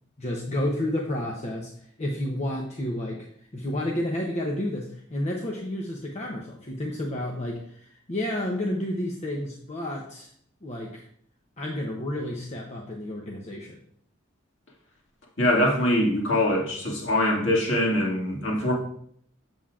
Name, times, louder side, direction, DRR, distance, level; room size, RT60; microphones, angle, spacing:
voice 1, 0.2-1.7 2.0-3.3 3.5-10.3 10.6-11.0 11.6-13.8, left 1 dB, 35° left, -1 dB, 0.7 m, -30 dB
voice 2, 15.4-18.7, left 1 dB, 60° left, -2 dB, 2.1 m, -23 dB
7.7 x 7.1 x 2.5 m, 0.64 s
head